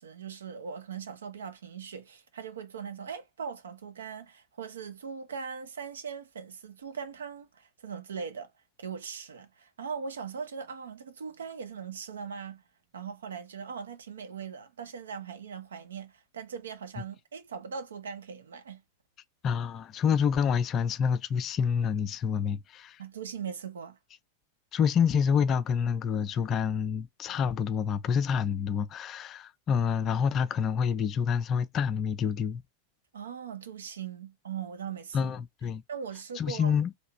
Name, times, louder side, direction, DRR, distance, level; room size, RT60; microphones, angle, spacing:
voice 1, 0.0-8.5 8.8-12.6 12.9-18.8 23.0-24.0 33.1-35.3 35.9-36.7, right 6 dB, 65° right, 0.8 m, -40 dB
voice 2, 19.4-23.0 24.7-32.6 35.1-35.8 36.4-37.0, left 7 dB, 30° left, 0.5 m, -27 dB
3.2 x 2.8 x 4.5 m
figure-of-eight pair, 90°, 0 cm